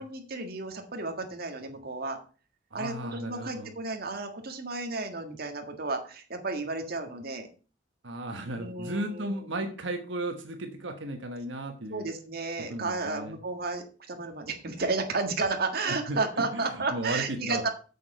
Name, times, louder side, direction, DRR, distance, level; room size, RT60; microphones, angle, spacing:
voice 1, 0.0-2.2 2.7-7.5 8.6-9.5 11.9-17.7, right 3 dB, 55° right, 4 dB, 1.7 m, -32 dB
voice 2, 2.7-3.7 8.0-12.0 12.7-13.3 16.1-17.7, right 1 dB, 80° right, 5 dB, 1.3 m, -35 dB
8.5 x 7.0 x 5.4 m, 0.37 s
head